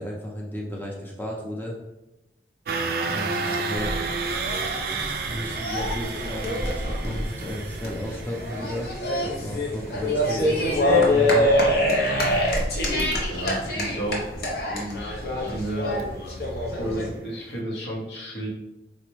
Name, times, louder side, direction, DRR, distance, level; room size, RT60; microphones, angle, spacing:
voice 1, 0.0-1.8 3.1-4.0 5.3-8.9 9.2-11.5, equal, 10° left, -2 dB, 0.5 m, -34 dB
sound 1, 2.7-16.7 17.0-17.3 17.6-17.7, right 4 dB, 55° right, 0.3 m, -33 dB
sound 2, 3.7-17.1, left 1 dB, 55° left, 0.7 m, -25 dB
voice 2, 13.3-14.3 14.7-15.1 15.5-16.0 16.8-18.5, right 1 dB, 75° left, -4 dB, 1.0 m, -31 dB
4.0 x 2.1 x 3.1 m, 0.94 s
head